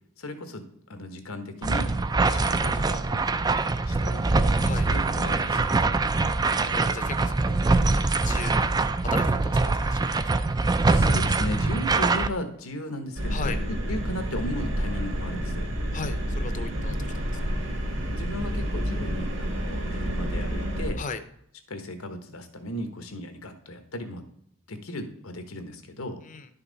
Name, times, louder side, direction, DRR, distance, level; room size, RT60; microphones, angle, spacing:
voice 1, 0.2-1.9 2.2-3.2 3.9-4.3 4.9-5.9 10.9-15.7 18.1-21.0 21.7-24.2 24.7-26.2, left 1 dB, 85° left, 7 dB, 1.3 m, -36 dB
sound 1, 1.6-12.3, right 3 dB, 20° right, 0.3 m, -23 dB
voice 2, 6.6-7.6 7.9-8.7 9.0-10.0 13.3-13.6 15.9-17.2 21.0-21.2 26.2-26.5, left 4 dB, 35° left, 10 dB, 0.7 m, -37 dB
sound 2, 13.2-20.9, equal, 60° right, 2.0 m, -29 dB
11.0 x 5.7 x 4.0 m, 0.72 s
head